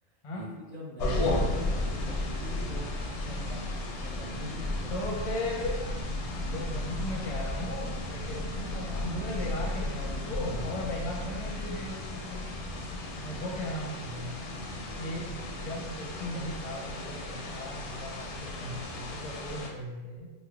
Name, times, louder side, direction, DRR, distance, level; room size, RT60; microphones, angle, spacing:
voice 1, 0.0-5.1, equal, 50° right, -6 dB, 0.6 m, -43 dB
sound 1, 1.0-19.7, left 1 dB, 85° left, 0.9 m, -34 dB
voice 2, 4.9-5.8 6.5-12.5 13.2-14.4 15.0-20.3, left 1 dB, 40° left, -2 dB, 0.5 m, -37 dB
sound 2, 10.7-19.4, right 1 dB, 85° right, 1.1 m, -50 dB
3.3 x 2.0 x 3.5 m, 1.2 s
omnidirectional pair, 1.1 m